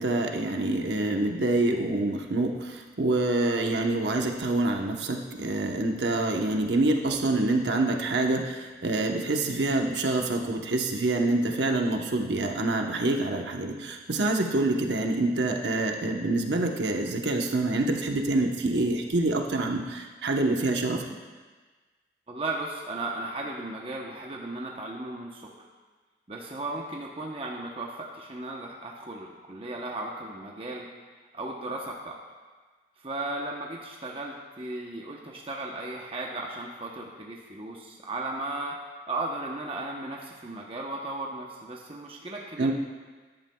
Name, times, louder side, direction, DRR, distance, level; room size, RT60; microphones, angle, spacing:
voice 1, 0.0-21.0 42.6-42.7, right 2 dB, 75° right, 2 dB, 1.0 m, -26 dB
voice 2, 22.3-25.6 26.3-30.9 31.3-32.2 33.0-38.7 39.1-42.7, right 2 dB, 30° right, -1 dB, 0.8 m, -36 dB
14.0 x 10.5 x 2.3 m, 1.4 s
head